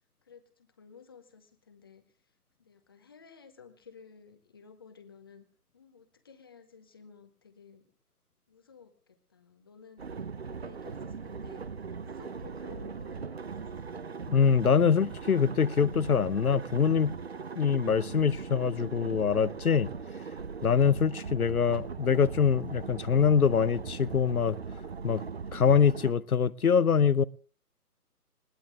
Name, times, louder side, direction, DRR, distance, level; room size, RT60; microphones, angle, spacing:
voice 1, 0.2-2.0 2.6-5.5 5.7-7.9 8.5-13.9, left 6 dB, 15° left, 0.9 m, -55 dB
sound 1, 10.0-26.1, right 5 dB, 40° right, 0.8 m, -40 dB
voice 2, 14.3-17.2 17.5-19.9 20.6-24.6 25.0-25.2 25.5-27.2, left 6 dB, 65° left, 0.8 m, -24 dB
20.5 x 18.5 x 3.4 m
figure-of-eight pair, 145°, 46 cm